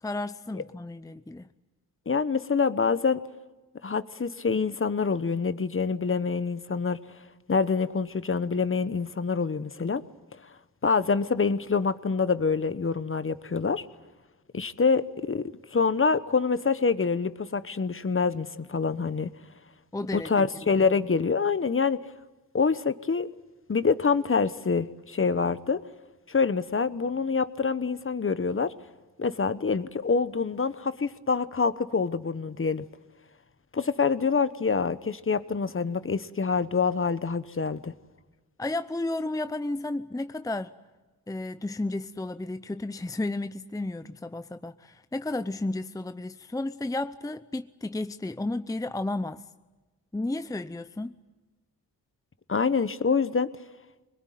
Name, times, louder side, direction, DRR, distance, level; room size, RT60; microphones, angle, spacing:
voice 1, 0.0-1.5 19.9-20.5 20.8-20.9 38.6-40.7 41.3-49.5 50.1-51.2, left 2 dB, 10° left, 11 dB, 0.7 m, -32 dB
voice 2, 2.1-3.2 3.8-7.0 7.5-10.0 10.8-13.8 14.5-19.3 20.1-22.0 22.5-23.3 23.7-25.8 26.3-28.7 29.2-32.8 33.7-37.9 52.5-53.5, left 5 dB, 35° left, 14 dB, 1.1 m, -26 dB
23.0 x 21.0 x 9.3 m, 1.2 s
cardioid pair, 65°, 37 cm